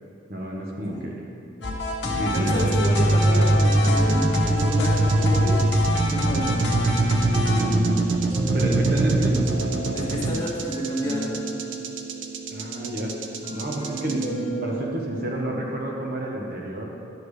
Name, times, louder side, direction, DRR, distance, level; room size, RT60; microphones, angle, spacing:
voice 1, 0.3-1.2 2.0-2.5 7.5-9.3 12.5-13.1 13.5-16.9, right 1 dB, 55° right, -1 dB, 1.1 m, -29 dB
sound 1, 1.6-7.6, left 2 dB, 70° left, 1.2 m, -28 dB
sound 2, 1.6-15.5, right 2 dB, 30° right, 1.5 m, -35 dB
voice 2, 2.3-5.6 6.1-6.5 9.9-11.4, left 1 dB, 20° left, -5 dB, 1.5 m, -30 dB
sound 3, 2.3-14.3, right 2 dB, 80° right, 0.6 m, -22 dB
10.5 x 6.9 x 3.3 m, 2.5 s
head